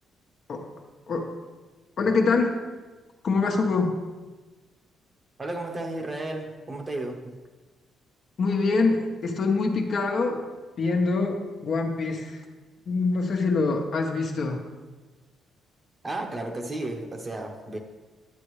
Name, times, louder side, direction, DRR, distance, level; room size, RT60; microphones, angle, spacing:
voice 1, 2.0-2.6 3.2-4.0 8.4-10.4 10.8-12.4 12.9-14.6, left 3 dB, 55° left, 2 dB, 1.1 m, -24 dB
voice 2, 5.4-7.3 16.0-17.8, right 2 dB, 30° right, 3 dB, 1.1 m, -33 dB
9.6 x 8.6 x 3.2 m, 1.3 s
cardioid pair, 90°, 0 cm